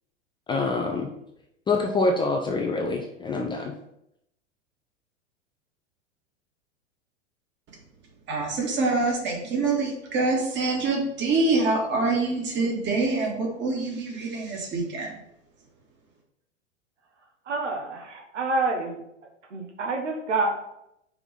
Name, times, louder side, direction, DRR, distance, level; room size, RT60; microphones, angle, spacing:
voice 1, 0.5-1.1 1.7-3.7, left 3 dB, 15° left, 2 dB, 0.5 m, -25 dB
voice 2, 8.3-15.1, right 3 dB, 30° right, 0 dB, 2.0 m, -25 dB
voice 3, 17.5-19.0 19.5-20.6, right 3 dB, 70° right, 1 dB, 1.6 m, -27 dB
5.4 x 4.6 x 5.7 m, 0.80 s
figure-of-eight pair, 95°, 37 cm